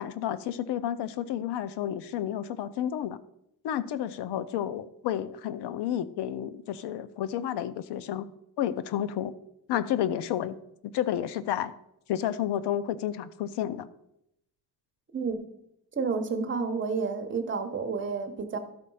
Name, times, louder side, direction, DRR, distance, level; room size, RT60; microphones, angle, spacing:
voice 1, 0.0-3.2 3.6-8.3 8.6-9.3 9.7-10.6 10.8-11.7 12.1-13.9, left 11 dB, 90° left, 15 dB, 0.6 m, -31 dB
voice 2, 15.1-15.4 16.0-18.6, right 5 dB, 30° right, 5 dB, 1.0 m, -30 dB
12.0 x 4.2 x 5.5 m, 0.80 s
cardioid pair, 155°, 39 cm